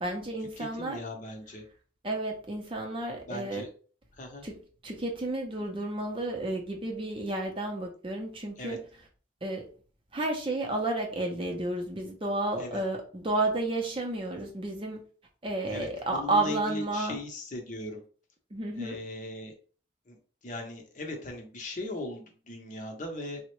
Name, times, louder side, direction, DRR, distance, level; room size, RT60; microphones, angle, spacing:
voice 1, 0.0-1.0 2.0-3.7 4.4-4.6 4.8-8.8 9.4-9.7 10.1-15.0 15.4-17.2 18.5-19.0, right 2 dB, 30° right, 2 dB, 0.5 m, -31 dB
voice 2, 0.6-1.6 3.2-3.7 4.1-4.4 8.6-8.8 12.6-12.8 15.7-18.0 18.8-19.5 20.1-23.4, left 1 dB, 40° left, 3 dB, 0.6 m, -39 dB
3.6 x 2.1 x 3.0 m, 0.40 s
head